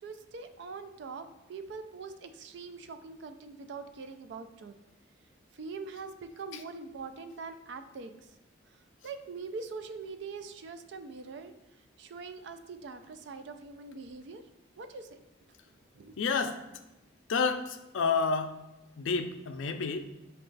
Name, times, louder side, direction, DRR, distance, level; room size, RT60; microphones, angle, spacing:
voice 1, 0.0-4.7 5.6-8.1 9.0-11.5 12.0-14.4 14.8-15.2 15.9-16.2, right 4 dB, 60° right, 9 dB, 0.3 m, -43 dB
voice 2, 16.2-16.6 17.3-18.6 19.0-20.0, left 5 dB, 80° left, 7 dB, 0.4 m, -29 dB
5.6 x 2.3 x 3.8 m, 0.99 s
head